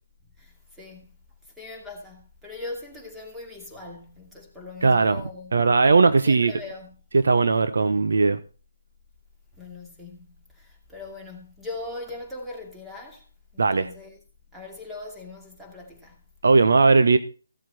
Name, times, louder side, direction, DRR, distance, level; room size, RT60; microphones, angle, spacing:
voice 1, 0.4-1.1 1.6-5.6 6.2-6.9 9.6-13.2 13.5-14.2 14.5-16.1, left 2 dB, 5° right, 2.5 m, -40 dB
voice 2, 4.8-5.2 5.5-6.5 7.1-8.4 13.6-13.9 16.4-17.2, right 4 dB, 65° right, 1.0 m, -18 dB
15.5 x 7.6 x 4.3 m
figure-of-eight pair, 150°, 0 cm